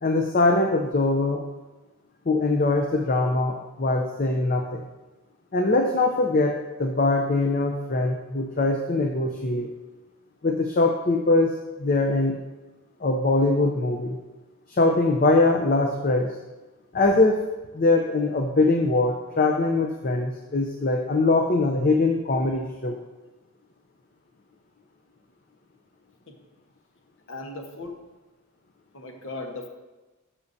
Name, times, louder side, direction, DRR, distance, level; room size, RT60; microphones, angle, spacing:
voice 1, 0.0-1.4 2.3-4.8 5.5-9.7 10.4-11.5 11.8-12.4 13.0-14.2 14.7-16.3 16.9-17.4 17.7-23.0, left 2 dB, 40° left, 3 dB, 0.6 m, -22 dB
voice 2, 27.3-28.0 28.9-29.7, left 2 dB, 65° left, 2 dB, 1.3 m, -37 dB
12.0 x 7.1 x 2.7 m, 1.1 s
head